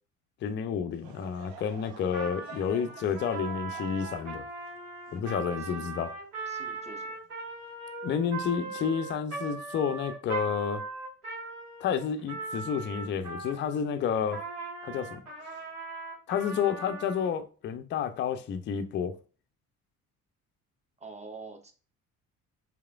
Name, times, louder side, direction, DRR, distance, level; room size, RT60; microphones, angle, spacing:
voice 1, 0.4-4.5 5.1-6.1 8.0-10.8 11.8-14.4 14.8-15.6 16.3-19.2, left 7 dB, 25° left, 0.4 m, -30 dB
Laughter / Crowd, 0.9-6.4 6.9-7.0 7.9-8.1, right 7 dB, 55° right, 0.7 m, -51 dB
Trumpet, 2.1-13.8 14.3-17.3, right 3 dB, 85° right, 1.5 m, -39 dB
voice 2, 5.5-6.1 6.5-7.2 21.0-21.7, right 3 dB, 15° right, 0.8 m, -47 dB
4.7 x 3.3 x 2.3 m
figure-of-eight pair, 55°, 44 cm